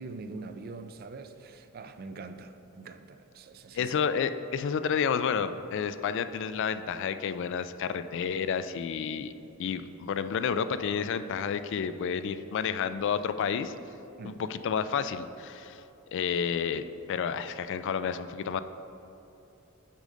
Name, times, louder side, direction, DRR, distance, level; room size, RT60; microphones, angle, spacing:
voice 1, 0.0-4.0 14.2-14.4, right 3 dB, 45° right, 9 dB, 0.4 m, -43 dB
voice 2, 3.7-9.3 9.6-13.7 14.2-15.8 16.1-18.6, left 7 dB, 60° left, 11 dB, 0.3 m, -30 dB
8.3 x 5.2 x 3.8 m, 2.9 s
head